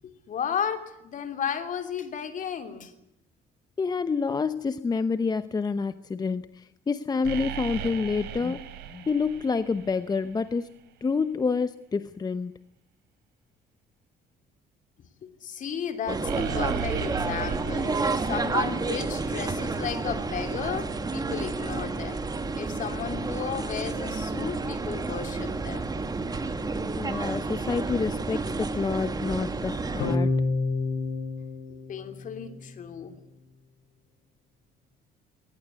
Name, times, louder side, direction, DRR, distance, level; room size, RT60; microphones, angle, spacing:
voice 1, 0.0-2.9 15.2-22.2 22.6-25.9 31.9-33.1, left 7 dB, 50° left, 8 dB, 3.1 m, -34 dB
voice 2, 3.8-10.7 11.0-12.5 26.9-30.3, left 4 dB, 25° left, 13 dB, 0.8 m, -28 dB
sound 1, 7.2-10.5 16.2-19.5, right 10 dB, 85° right, 4.2 m, -38 dB
sound 2, 16.1-30.2, right 3 dB, 25° right, 1.9 m, -30 dB
sound 3, 30.0-32.6, left 3 dB, 75° left, 5.0 m, -28 dB
22.0 x 18.5 x 9.7 m, 0.81 s
cardioid pair, 110°, 17 cm